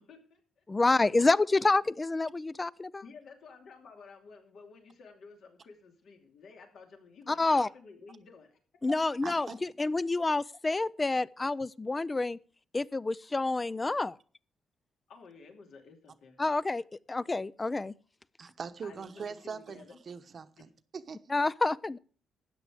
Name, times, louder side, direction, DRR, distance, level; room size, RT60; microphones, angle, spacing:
voice 1, 0.0-0.6 3.0-8.6 15.1-16.4 18.8-20.0 20.6-20.7, left 4 dB, 70° left, 2.7 m, -53 dB
voice 2, 0.7-3.0 7.3-7.7 8.8-12.4 12.7-14.2 16.4-17.9 21.3-22.0, left 3 dB, 25° left, 0.5 m, -28 dB
voice 3, 9.2-9.5 18.4-21.2, right 5 dB, 50° right, 1.0 m, -42 dB
13.0 x 8.9 x 5.0 m
cardioid pair, 85°, 0 cm